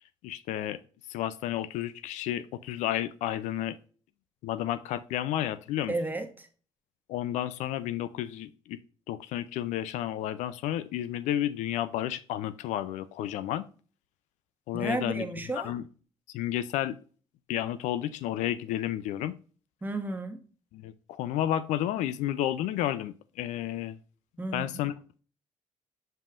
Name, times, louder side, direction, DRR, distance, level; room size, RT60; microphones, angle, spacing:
voice 1, 0.2-0.8 1.1-3.8 4.4-5.9 7.1-8.8 9.1-13.7 14.7-15.3 15.5-15.9 16.3-17.0 17.5-19.3 20.7-24.0 24.5-24.9, left 12 dB, 80° left, 0.4 m, -31 dB
voice 2, 5.9-6.5 14.7-15.7 19.8-20.4 24.4-24.8, right 2 dB, 15° right, 1.2 m, -33 dB
7.2 x 5.5 x 2.5 m
supercardioid pair, 60°, 12 cm